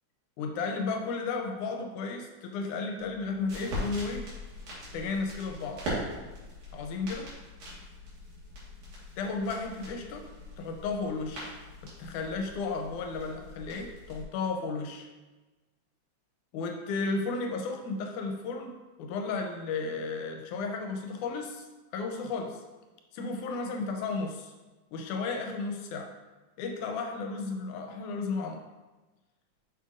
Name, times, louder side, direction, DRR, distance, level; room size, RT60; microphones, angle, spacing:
voice 1, 0.4-4.3 4.9-5.8 6.7-7.3 9.2-10.3 10.6-11.6 11.8-15.1 16.5-18.7 19.0-21.7 21.9-22.6 23.1-24.5 24.9-26.1 26.6-28.6, left 4 dB, 85° left, 3 dB, 2.1 m, -33 dB
sound 1, 3.0-14.2, equal, 75° right, 3.3 m, -41 dB
6.6 x 6.2 x 2.6 m, 1.2 s
omnidirectional pair, 3.5 m